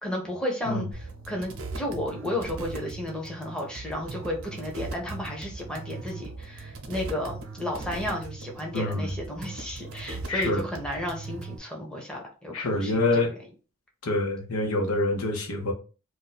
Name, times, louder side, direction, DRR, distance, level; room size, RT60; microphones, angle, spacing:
voice 1, 0.0-13.1, left 1 dB, 5° left, 0.7 m, -33 dB
sound 1, 0.9-11.6, right 3 dB, 70° right, 0.7 m, -39 dB
voice 2, 8.7-9.1 10.3-10.7 12.5-13.3 14.0-15.7, left 2 dB, 90° left, 0.9 m, -26 dB
2.6 x 2.2 x 4.0 m
head